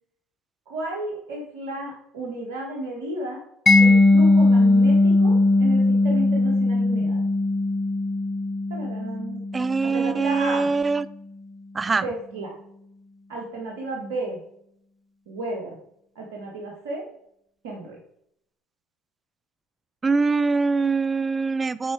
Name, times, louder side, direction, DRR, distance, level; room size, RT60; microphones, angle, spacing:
voice 1, 0.7-3.4 3.7-7.3 8.7-9.4 9.8-10.7 12.0-12.6 13.3-14.4 15.3-15.7 16.2-17.0 17.6-18.0, right 2 dB, 80° right, -1 dB, 1.6 m, -33 dB
Mallet percussion, 3.7-10.4, left 2 dB, 25° left, 1.1 m, -19 dB
voice 2, 9.5-11.1 11.7-12.0 20.0-21.9, right 4 dB, 25° right, 16 dB, 0.5 m, -23 dB
8.8 x 4.5 x 4.6 m, 0.73 s
hypercardioid pair, 70°, 0 cm